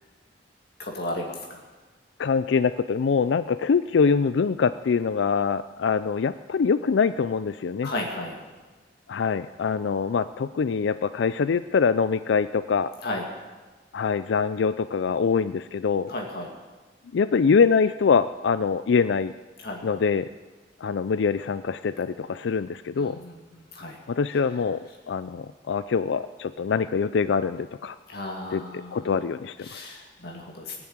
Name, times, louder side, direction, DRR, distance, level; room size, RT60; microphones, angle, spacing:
voice 1, 0.8-1.4 7.8-8.4 13.0-13.3 16.1-16.5 19.6-20.0 23.0-24.0 28.1-29.2 29.6-30.7, left 1 dB, 60° left, 0 dB, 2.3 m, -34 dB
voice 2, 2.2-7.9 9.1-12.9 13.9-16.1 17.1-19.3 19.8-20.3 20.8-23.2 24.1-28.0 28.5-29.8, left 5 dB, 80° left, 13 dB, 0.4 m, -24 dB
20.5 x 7.1 x 8.8 m, 1.3 s
head